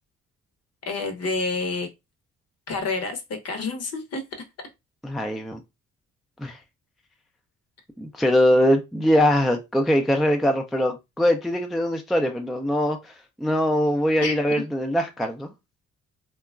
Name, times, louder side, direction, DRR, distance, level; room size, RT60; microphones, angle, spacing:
voice 1, 0.9-1.9 2.7-4.2 14.2-14.4, left 3 dB, 55° left, 0.8 m, -28 dB
voice 2, 5.0-5.6 6.4-6.6 8.0-13.1 13.4-15.5, equal, ahead, 0.3 m, -22 dB
2.8 x 2.3 x 2.3 m
cardioid pair, 90°, 30 cm